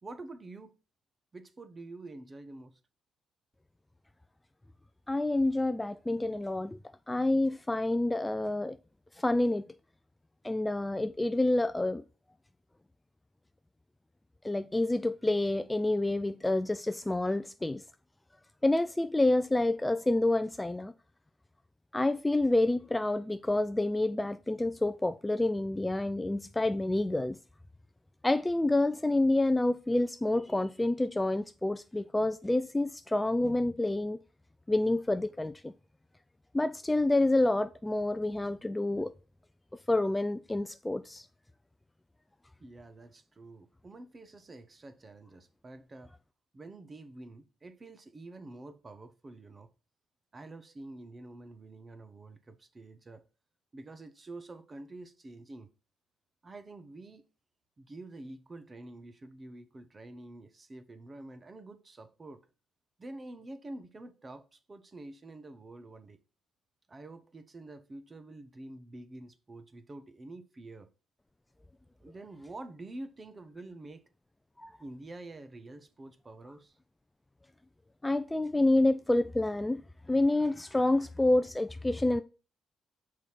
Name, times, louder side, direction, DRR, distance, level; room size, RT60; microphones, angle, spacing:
voice 1, 0.0-0.8 1.3-2.8 42.6-46.2 46.5-49.7 50.3-53.2 53.7-55.7 56.4-57.3 57.8-62.5 63.0-66.2 66.9-70.9 72.0-74.0 74.8-76.8, right 2 dB, 30° right, 1.1 m, -47 dB
voice 2, 5.1-6.8 7.1-8.8 9.2-9.6 10.4-12.0 14.4-17.8 18.6-20.9 21.9-27.4 28.2-34.2 34.7-35.7 36.5-39.1 39.9-41.3 74.6-74.7 78.0-79.8 80.1-82.2, left 2 dB, 10° left, 0.4 m, -28 dB
6.5 x 4.8 x 5.7 m
cardioid pair, 90°, 0 cm